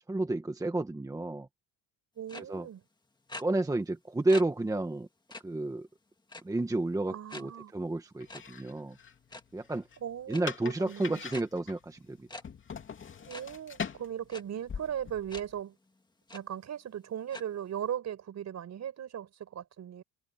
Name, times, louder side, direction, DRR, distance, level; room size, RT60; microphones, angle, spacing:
voice 1, 0.1-1.5 2.5-2.7 3.4-5.1 5.4-5.9 6.4-9.0 9.5-9.8 10.3-12.3, right 2 dB, 10° right, 1.2 m, -31 dB
voice 2, 2.2-2.8 7.1-7.7 10.0-11.2 13.3-15.8 16.3-20.0, right 9 dB, 45° right, 5.2 m, -38 dB
sound 1, 2.3-2.4 3.3-3.4 4.3-4.4 4.8-4.9 5.3-5.4 6.3-6.6 7.3-7.4 8.3-8.4 9.2-9.4 10.3-10.4 11.3-11.4 12.3-12.4 13.3-13.4 14.3-14.4 15.3-15.4 15.9-16.0 16.3-16.4 17.3-17.4, left 2 dB, 10° left, 1.9 m, -43 dB
sound 2, 8.2-15.6, left 6 dB, 30° left, 2.6 m, -44 dB
cardioid pair, 140°, 39 cm